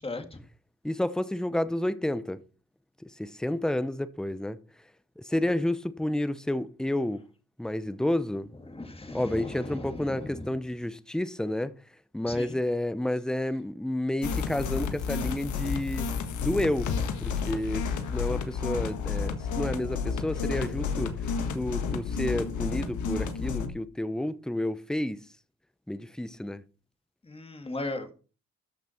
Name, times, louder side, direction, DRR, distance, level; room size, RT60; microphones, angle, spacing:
voice 1, 0.0-0.4 8.7-10.5 12.3-12.6 27.2-28.1, left 2 dB, 20° left, 2.1 m, -37 dB
voice 2, 0.8-2.4 3.0-4.6 5.2-7.2 7.6-8.5 9.1-11.7 12.1-16.1 16.4-16.9 17.2-21.1 21.5-25.2 25.9-26.6, left 1 dB, ahead, 0.7 m, -30 dB
sound 1, 14.2-23.7, left 5 dB, 75° left, 1.7 m, -31 dB
13.0 x 6.0 x 4.4 m
cardioid pair, 90°, 30 cm